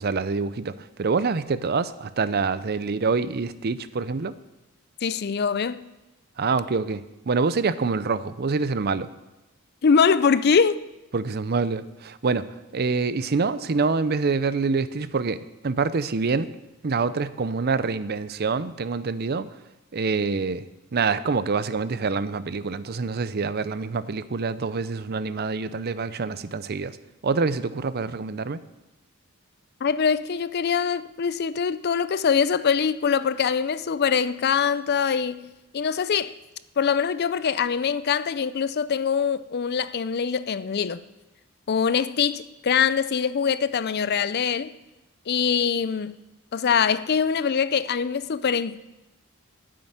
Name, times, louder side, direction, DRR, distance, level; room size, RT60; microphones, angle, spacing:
voice 1, 0.0-4.3 6.4-9.1 11.1-12.5 12.7-16.5 16.8-19.5 19.9-20.6 20.9-27.0 27.2-28.6, right 4 dB, 45° right, 0.5 m, -26 dB
voice 2, 5.0-5.8 9.8-10.8 29.8-35.5 35.7-36.3 36.8-41.0 41.7-44.7 45.3-46.2 46.5-48.8, left 6 dB, 45° left, 0.4 m, -23 dB
9.8 x 7.6 x 9.3 m
head